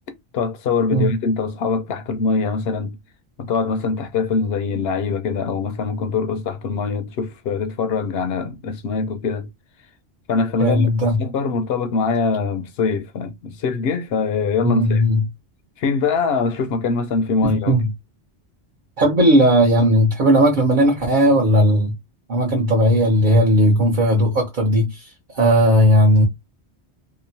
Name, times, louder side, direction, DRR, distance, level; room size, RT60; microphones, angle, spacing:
voice 1, 0.3-2.9 3.4-9.5 10.3-10.9 11.2-15.0 15.8-17.8, left 4 dB, 70° left, 0.8 m, -23 dB
voice 2, 10.6-11.2 14.6-15.2 17.4-17.9 19.0-21.9 22.3-26.2, equal, 50° right, 0.9 m, -16 dB
2.9 x 2.1 x 2.6 m
omnidirectional pair, 1.1 m